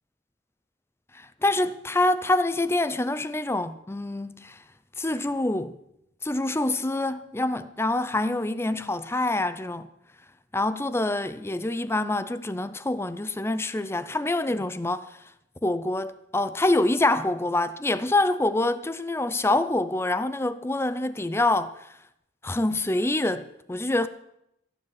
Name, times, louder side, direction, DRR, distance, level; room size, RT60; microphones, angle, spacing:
voice 1, 1.1-4.6 5.0-5.8 6.2-9.9 10.5-15.2 15.6-22.0 22.4-24.1, left 2 dB, 15° left, 0.5 m, -26 dB
16.0 x 7.5 x 7.9 m
head